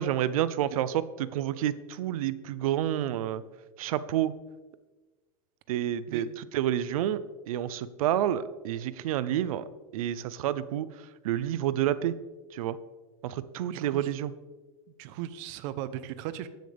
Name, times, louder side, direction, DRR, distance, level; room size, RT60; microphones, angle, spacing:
voice 1, 0.0-3.4 3.8-4.3 5.7-9.6 9.9-10.9 11.2-12.2 12.5-12.8 13.2-14.3, right 11 dB, 85° right, 16 dB, 0.7 m, -29 dB
voice 2, 13.7-14.1 15.0-16.5, right 12 dB, 60° right, 14 dB, 0.9 m, -37 dB
14.5 x 10.5 x 3.5 m, 1.2 s
supercardioid pair, 130°, 18 cm